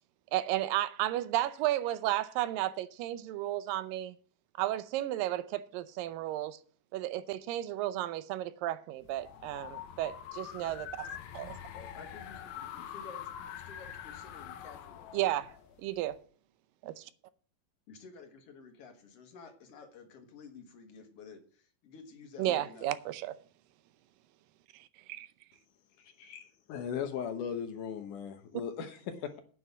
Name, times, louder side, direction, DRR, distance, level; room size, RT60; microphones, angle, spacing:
voice 1, 0.3-4.2 4.6-6.6 6.9-11.1 11.3-11.6 15.1-15.5 15.8-16.2 16.8-17.1 22.4-23.4 24.7-25.3, right 14 dB, 80° right, 2.4 m, -33 dB
sound 1, 9.0-16.2, left 9 dB, 85° left, 2.8 m, -45 dB
voice 2, 11.7-15.1 17.9-22.9, left 4 dB, 50° left, 2.2 m, -52 dB
voice 3, 26.0-29.4, left 7 dB, 70° left, 2.3 m, -38 dB
9.7 x 6.1 x 8.1 m
omnidirectional pair, 4.1 m